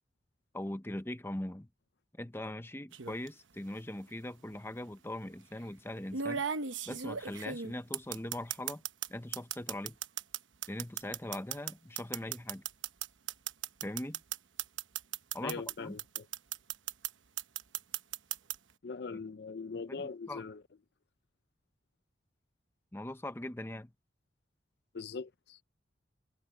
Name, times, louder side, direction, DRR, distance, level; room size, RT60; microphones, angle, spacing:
voice 1, 0.5-1.7 2.2-6.4 6.9-8.8 9.1-10.0 10.7-12.6 13.8-14.2 15.3-16.0 19.1-19.2 19.9-20.4 22.9-23.9, left 1 dB, 15° left, 0.7 m, -41 dB
sound 1, 2.9-3.3 4.5-4.6 6.1-9.1 9.3-15.7 16.0-17.1 17.4-18.5, right 8 dB, 90° right, 1.0 m, -36 dB
voice 2, 15.4-16.3 18.8-20.6 24.9-25.6, left 4 dB, 60° left, 0.5 m, -41 dB
head